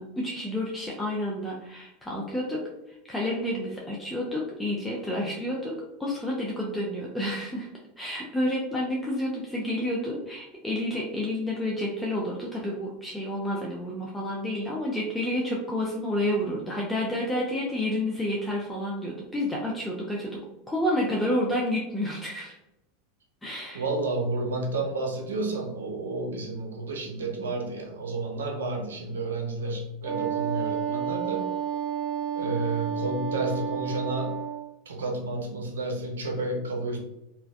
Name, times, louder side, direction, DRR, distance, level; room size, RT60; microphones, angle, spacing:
voice 1, 0.0-2.6 2.9-7.7 8.0-22.5 23.4-23.8, left 1 dB, 10° left, -3 dB, 0.4 m, -30 dB
voice 2, 23.7-31.5 32.4-34.4 34.9-37.0, right 2 dB, 90° right, 1 dB, 0.5 m, -31 dB
Wind instrument woodwind instrument, 30.0-34.7, right 8 dB, 20° right, 1.1 m, -31 dB
2.5 x 2.1 x 2.3 m, 0.91 s
hypercardioid pair, 105°, 0 cm